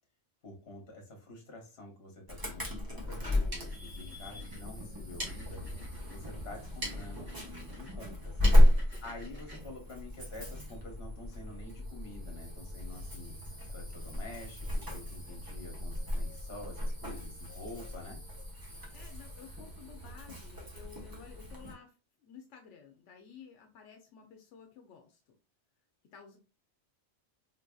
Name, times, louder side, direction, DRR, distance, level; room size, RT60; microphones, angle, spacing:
voice 1, 0.4-5.6 6.1-7.3 7.7-8.4 9.0-13.3 13.7-18.2, left 2 dB, 60° left, 2 dB, 1.3 m, -48 dB
Insect / Alarm, 2.3-21.7, left 1 dB, 20° right, 0.8 m, -32 dB
sound 1, 3.3-10.7, equal, 40° right, 1.9 m, -47 dB
voice 2, 8.5-8.9 18.9-25.3 26.1-26.4, left 7 dB, 85° left, 4 dB, 0.9 m, -53 dB
4.3 x 2.6 x 2.2 m, 0.32 s
omnidirectional pair, 1.2 m